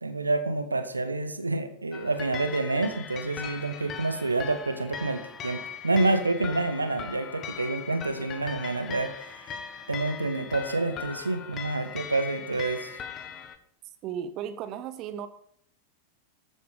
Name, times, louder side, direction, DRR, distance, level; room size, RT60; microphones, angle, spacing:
voice 1, 0.0-9.6 9.9-13.0, right 2 dB, 80° right, 9 dB, 1.4 m, -28 dB
sound 1, 1.9-13.6, left 7 dB, 30° left, 1.7 m, -40 dB
voice 2, 14.0-15.3, right 9 dB, 35° right, 11 dB, 0.9 m, -35 dB
13.5 x 9.2 x 5.1 m, 0.66 s
figure-of-eight pair, 90°, 0 cm